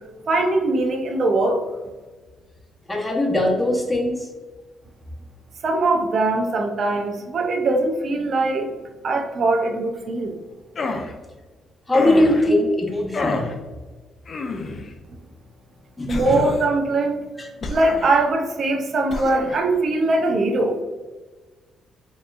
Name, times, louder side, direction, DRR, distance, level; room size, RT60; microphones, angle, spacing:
voice 1, 0.3-1.6 5.6-8.7 9.0-10.4 16.1-17.2 17.7-20.8, right 2 dB, 55° right, 3 dB, 0.5 m, -21 dB
voice 2, 2.9-4.3 11.9-13.5 16.0-16.4 17.4-17.5, left 1 dB, 15° left, -1 dB, 1.0 m, -20 dB
sound 1, 10.7-11.1 11.9-12.5 13.1-13.5 14.3-14.9 16.1-16.8 17.6-18.3 19.1-19.6, left 3 dB, 45° left, 0.5 m, -28 dB
4.5 x 2.9 x 2.4 m, 1.3 s
cardioid pair, 90°, 0 cm